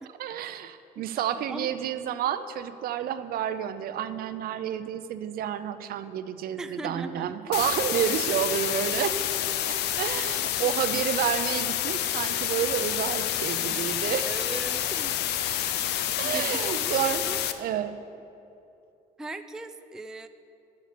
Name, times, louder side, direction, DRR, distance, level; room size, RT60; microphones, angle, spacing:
voice 1, 0.2-9.1 9.7-14.3 16.2-17.3 17.6-18.0, right 10 dB, 60° right, 11 dB, 0.5 m, -30 dB
voice 2, 6.6-7.3 14.2-15.2 15.9-17.6 19.2-20.3, right 2 dB, 5° right, 9 dB, 0.3 m, -39 dB
sound 1, 7.5-17.5, left 11 dB, 80° left, 0.5 m, -28 dB
9.2 x 6.5 x 6.7 m, 2.8 s
cardioid pair, 110°, 17 cm